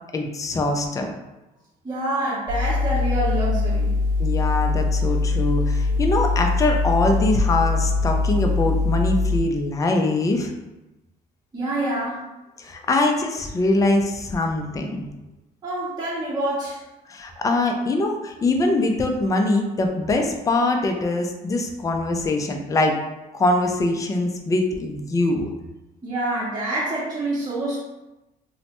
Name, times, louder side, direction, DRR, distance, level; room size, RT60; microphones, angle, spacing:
voice 1, 0.1-1.1 4.2-10.5 12.6-15.0 17.1-22.9 23.3-25.5, left 2 dB, 20° left, 3 dB, 0.4 m, -23 dB
voice 2, 1.8-3.9 11.5-12.2 15.6-16.8 26.0-27.8, right 1 dB, 25° right, -8 dB, 0.8 m, -26 dB
sound 1, 2.5-9.4, left 3 dB, 55° right, 0.6 m, -22 dB
3.0 x 2.1 x 2.9 m, 1.0 s
cardioid pair, 110°, 17 cm